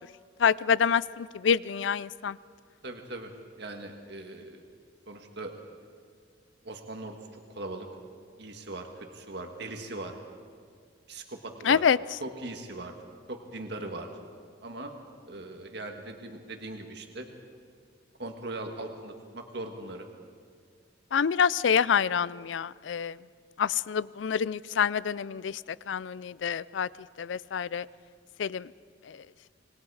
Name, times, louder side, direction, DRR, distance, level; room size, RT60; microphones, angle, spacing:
voice 1, 0.4-2.4 11.6-12.0 21.1-23.2 23.6-25.6 25.9-26.9 27.2-27.9 28.4-28.7 29.1-29.2, left 7 dB, 80° left, 20 dB, 0.4 m, -26 dB
voice 2, 2.8-3.3 3.6-4.6 5.1-5.5 6.6-7.9 8.4-10.1 11.1-11.8 12.2-12.9 13.3-14.1 14.6-14.9 15.3-17.3 18.2-20.0, right 2 dB, 60° right, 4 dB, 1.7 m, -40 dB
26.5 x 21.0 x 4.8 m, 2.1 s
head